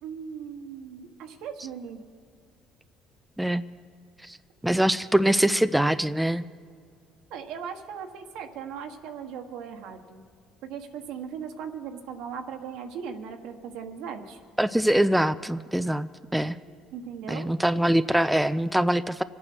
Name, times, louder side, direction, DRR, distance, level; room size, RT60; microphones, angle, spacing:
voice 1, 0.0-2.0 7.3-10.2 10.6-14.4 16.9-17.5, right 7 dB, 80° right, 5 dB, 1.4 m, -38 dB
voice 2, 4.6-6.4 14.6-16.6 17.3-19.2, right 1 dB, 5° right, 12 dB, 0.4 m, -23 dB
24.5 x 9.0 x 6.1 m, 2.2 s
cardioid pair, 95°, 0 cm